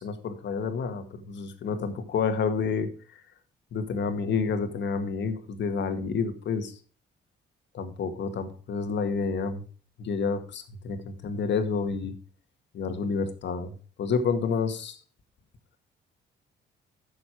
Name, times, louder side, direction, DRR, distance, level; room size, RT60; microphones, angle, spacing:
voice 1, 0.0-3.2 3.7-6.7 7.7-9.6 10.0-12.1 12.7-15.0, left 5 dB, 65° left, 7 dB, 1.9 m, -29 dB
11.5 x 7.0 x 4.6 m, 0.38 s
cardioid pair, 90°, 20 cm